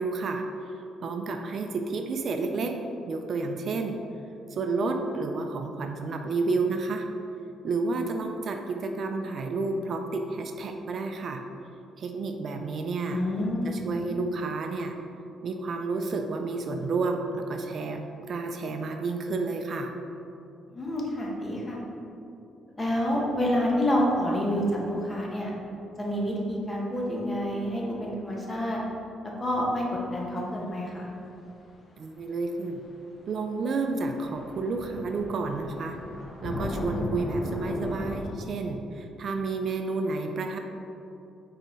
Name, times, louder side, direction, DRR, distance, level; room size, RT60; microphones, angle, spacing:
voice 1, 0.0-2.8 3.1-4.0 4.5-7.1 7.6-11.4 12.0-13.2 13.6-15.0 15.4-19.9 32.0-32.9 33.3-36.0 36.4-40.6, right 3 dB, 55° right, 4 dB, 0.4 m, -30 dB
voice 2, 13.1-13.9 20.7-21.8 22.8-25.5 26.0-28.8 29.4-31.1, equal, 20° left, -3 dB, 1.3 m, -28 dB
sound 1, 32.2-32.3 33.5-33.6 33.8-38.4, left 1 dB, 50° left, 0.7 m, -36 dB
5.6 x 4.2 x 4.0 m, 2.7 s
cardioid pair, 90°, 0 cm